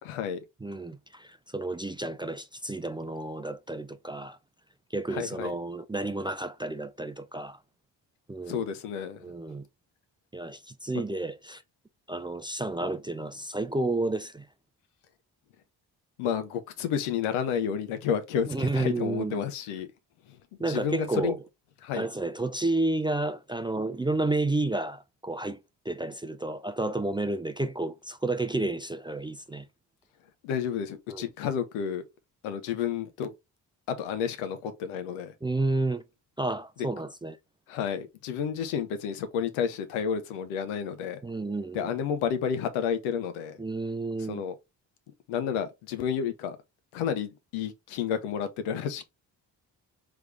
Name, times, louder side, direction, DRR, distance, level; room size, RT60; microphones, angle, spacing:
voice 1, 0.0-0.4 5.1-5.5 8.5-9.3 16.2-19.9 20.3-20.4 20.7-21.4 21.8-22.1 30.4-32.0 32.4-33.3 33.9-35.3 37.7-41.2 41.7-43.6 44.3-44.5 45.3-46.6 46.9-49.0, left 8 dB, 85° left, 0.8 m, -31 dB
voice 2, 0.6-4.4 4.9-7.6 8.3-8.6 9.2-9.6 10.3-11.6 12.1-14.5 18.5-19.4 20.6-21.4 21.9-29.7 31.1-31.2 35.4-36.0 36.4-37.4 41.2-41.9 43.6-44.4, right 2 dB, 10° right, 0.3 m, -31 dB
3.4 x 3.2 x 3.3 m
hypercardioid pair, 45°, 49 cm